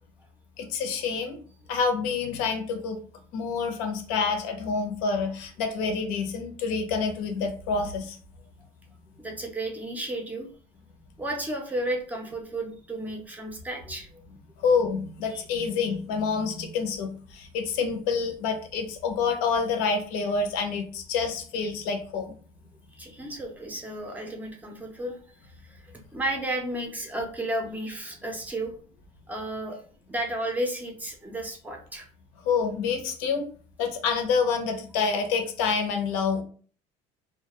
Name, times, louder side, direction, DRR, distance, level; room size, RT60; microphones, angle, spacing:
voice 1, 0.6-1.4 1.7-3.0 3.3-8.2 14.6-22.3 32.4-33.4 33.8-36.4, left 5 dB, 90° left, 5 dB, 0.6 m, -27 dB
voice 2, 9.2-10.5 11.2-14.2 15.3-15.7 22.9-25.2 25.4-28.7 29.3-32.1, right 1 dB, 10° right, 2 dB, 0.4 m, -33 dB
2.3 x 2.2 x 2.9 m, 0.43 s
cardioid pair, 150°, 15 cm